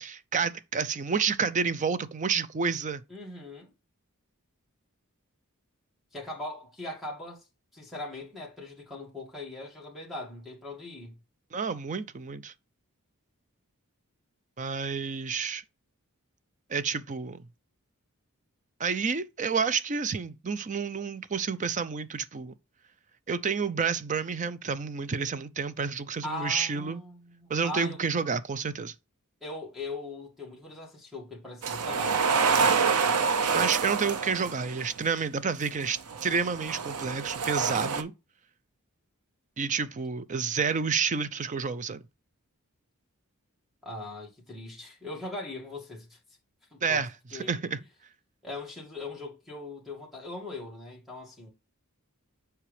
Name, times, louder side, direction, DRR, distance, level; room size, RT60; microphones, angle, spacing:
voice 1, 0.0-3.0 11.5-12.5 14.6-15.6 16.7-17.4 18.8-22.5 23.3-27.0 27.5-28.9 32.6-32.7 33.2-38.1 39.6-42.0 46.8-47.8, right 5 dB, 35° right, 0.5 m, -30 dB
voice 2, 3.1-3.7 6.1-7.4 7.7-11.2 26.2-28.0 29.4-32.3 37.7-38.1 43.8-46.2 46.7-47.6 48.4-51.5, left 2 dB, ahead, 2.1 m, -40 dB
sound 1, 31.6-34.9 35.8-38.0, right 5 dB, 80° right, 0.7 m, -27 dB
7.4 x 4.8 x 3.3 m
head